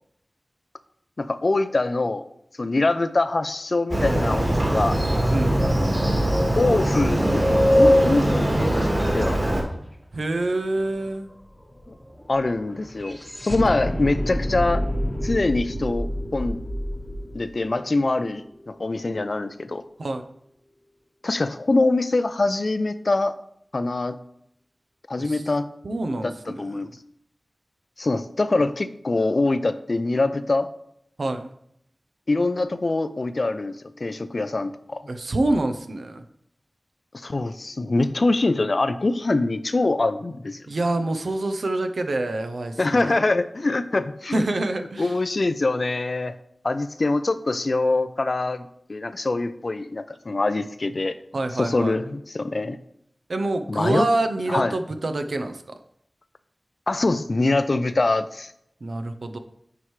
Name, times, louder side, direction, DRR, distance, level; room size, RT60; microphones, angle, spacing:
voice 1, 1.2-2.2 2.6-5.0 6.5-7.5 7.7-9.4 11.9-12.0 12.3-14.8 15.2-16.6 17.3-19.8 21.2-23.3 23.7-24.2 25.1-25.7 26.2-26.9 28.0-30.7 32.3-35.0 37.1-40.6 42.8-44.4 44.8-46.3 46.6-51.2 51.6-52.8 53.7-54.1 54.5-54.8 56.9-58.5, left 2 dB, 60° left, 12 dB, 0.5 m, -24 dB
Motorcycle, 3.9-9.6, equal, 40° right, 2.4 m, -20 dB
sound 1, 10.1-10.2 10.4-18.7, equal, 10° left, 1.0 m, -30 dB
voice 2, 10.1-11.3 20.0-20.2 25.2-25.4 25.8-27.0 31.2-31.5 35.1-36.2 40.7-43.2 44.3-45.1 51.3-52.0 53.3-55.6 58.8-59.4, right 2 dB, 90° right, 7 dB, 0.6 m, -26 dB
9.8 x 4.7 x 3.2 m, 0.74 s
wide cardioid pair, 55°, 0 cm